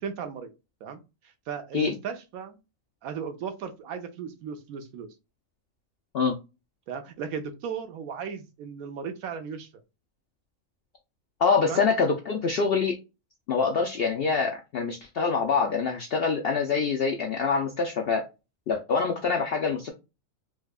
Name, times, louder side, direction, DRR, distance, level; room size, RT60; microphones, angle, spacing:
voice 1, 0.0-0.5 0.8-1.0 1.5-2.6 3.0-5.1 6.9-9.7 11.6-11.8, right 6 dB, 75° right, 7 dB, 1.1 m, -36 dB
voice 2, 11.4-13.0 13.5-18.3 18.7-19.9, left 5 dB, 65° left, 3 dB, 0.6 m, -25 dB
4.6 x 2.3 x 2.3 m, 0.26 s
omnidirectional pair, 1.5 m